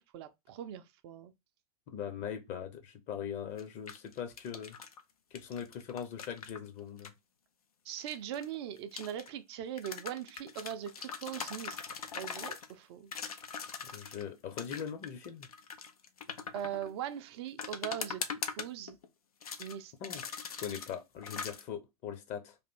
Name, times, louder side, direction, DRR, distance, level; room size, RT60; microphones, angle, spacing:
voice 1, 0.0-1.3 7.9-11.8 12.1-13.1 16.5-19.0 19.6-19.9, right 10 dB, 45° right, 0.5 m, -41 dB
voice 2, 1.9-4.8 5.3-7.1 13.8-15.5 20.0-20.2 20.6-22.6, left 8 dB, 35° left, 0.9 m, -41 dB
sound 1, 3.6-5.0 5.4-7.1 8.0-9.3 9.8-12.7 13.1-14.2 14.6-16.9 17.6-19.1 19.4-19.8 20.0-20.9 21.2-21.6, left 6 dB, 70° left, 0.7 m, -41 dB
3.4 x 2.6 x 4.2 m
figure-of-eight pair, 90°, 20 cm